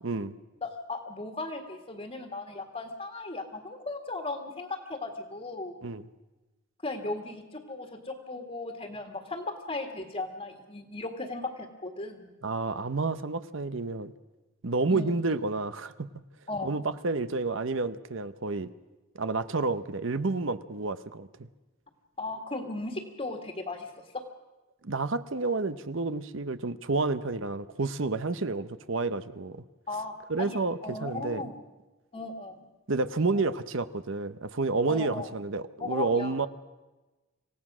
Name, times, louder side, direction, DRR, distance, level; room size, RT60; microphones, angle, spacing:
voice 1, 0.0-0.4 5.8-6.1 12.4-14.1 14.6-16.1 16.6-18.7 19.1-21.5 24.8-29.6 30.3-31.4 32.9-36.5, right 3 dB, 60° right, 13 dB, 0.8 m, -30 dB
voice 2, 0.6-5.8 6.8-12.4 14.9-15.2 16.5-16.7 22.2-24.2 29.9-31.6 32.1-32.7 33.3-33.4 34.9-35.3 35.8-36.5, left 2 dB, 30° left, 3 dB, 1.9 m, -37 dB
27.0 x 16.5 x 6.2 m, 1.1 s
head